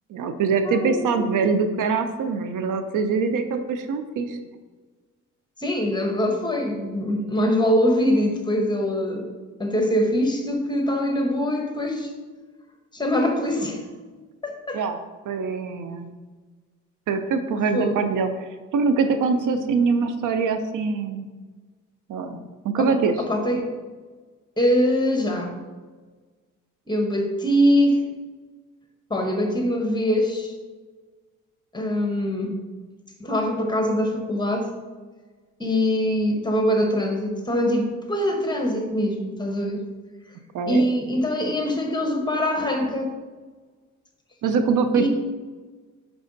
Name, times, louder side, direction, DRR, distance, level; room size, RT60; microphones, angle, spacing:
voice 1, 0.1-4.4 14.7-15.0 15.3-16.1 17.1-21.3 22.1-23.1 40.5-40.8 44.4-45.1, right 5 dB, 70° right, 8 dB, 0.6 m, -23 dB
voice 2, 0.6-1.4 5.6-9.3 9.6-12.1 12.9-13.8 14.4-14.8 17.7-18.0 22.8-22.9 23.2-23.7 24.6-25.5 26.9-28.0 29.1-30.5 31.7-32.6 33.2-34.7 35.6-39.8 40.7-43.1 44.9-45.1, equal, 15° left, 2 dB, 1.1 m, -23 dB
5.1 x 4.7 x 3.9 m, 1.4 s
cardioid pair, 80°, 32 cm